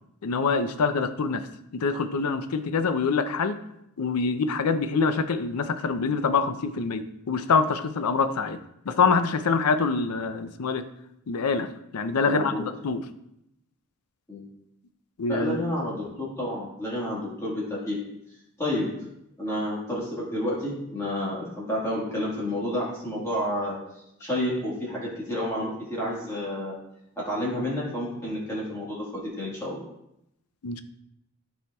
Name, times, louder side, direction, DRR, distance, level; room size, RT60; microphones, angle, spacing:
voice 1, 0.2-1.5 1.7-3.6 4.0-8.6 8.9-10.8 11.3-13.0 15.2-15.6 30.6-30.8, left 4 dB, 85° left, 10 dB, 0.5 m, -25 dB
voice 2, 12.2-12.6 14.3-14.4 15.3-18.0 18.6-18.9 19.4-23.8 24.2-26.7 27.2-29.8, left 1 dB, 15° left, -6 dB, 1.5 m, -30 dB
11.0 x 4.4 x 2.3 m, 0.81 s
head